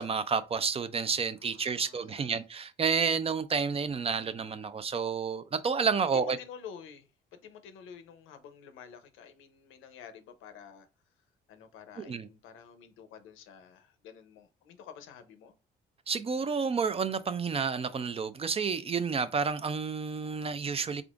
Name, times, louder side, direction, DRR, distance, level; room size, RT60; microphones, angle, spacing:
voice 1, 0.0-6.4 12.0-12.3 16.1-21.0, right 5 dB, 30° right, 0.4 m, -30 dB
voice 2, 1.4-2.4 6.1-10.9 11.5-15.5, left 7 dB, 90° left, 0.7 m, -50 dB
3.6 x 3.4 x 2.4 m
cardioid pair, 90°, 20 cm